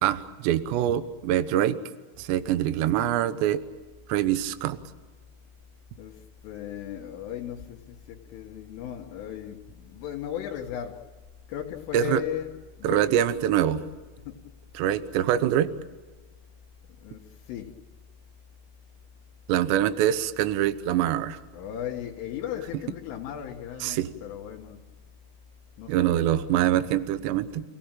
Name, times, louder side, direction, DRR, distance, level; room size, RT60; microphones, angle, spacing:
voice 1, 0.0-1.8 2.2-3.6 4.1-4.8 11.9-12.2 12.8-13.8 14.7-15.7 19.5-21.4 23.8-24.1 25.9-27.6, right 11 dB, 75° right, 3.0 m, -24 dB
voice 2, 6.0-11.1 11.5-13.1 14.3-14.4 17.0-17.7 21.5-24.8 25.8-26.4, left 10 dB, 80° left, 4.1 m, -36 dB
29.0 x 17.5 x 9.0 m
omnidirectional pair, 5.7 m